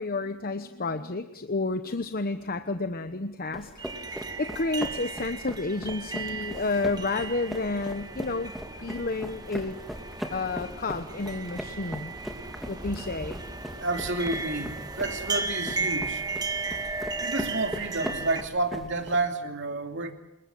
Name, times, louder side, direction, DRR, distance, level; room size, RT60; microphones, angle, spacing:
voice 1, 0.0-9.8 10.3-12.1 12.7-13.4, left 3 dB, 45° left, 8 dB, 1.0 m, -31 dB
sound 1, 3.5-19.2, equal, ahead, 3.0 m, -40 dB
sound 2, 3.8-18.4, right 4 dB, 20° right, 1.8 m, -35 dB
sound 3, 9.0-18.5, left 1 dB, 75° left, 7.0 m, -54 dB
voice 2, 13.8-16.2 16.9-20.1, right 2 dB, 60° right, 5 dB, 2.9 m, -30 dB
27.0 x 22.5 x 7.8 m, 0.88 s
head